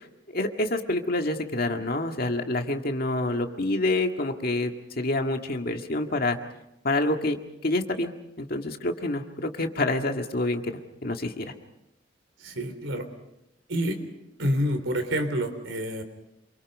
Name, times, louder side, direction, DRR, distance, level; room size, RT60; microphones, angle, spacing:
voice 1, 0.3-6.4 6.8-7.4 7.6-8.1 8.4-11.5, left 2 dB, 50° left, 4 dB, 1.9 m, -27 dB
voice 2, 12.4-13.1 13.7-14.0 14.4-16.0, equal, 85° right, 8 dB, 3.5 m, -28 dB
27.5 x 24.0 x 5.4 m, 0.85 s
head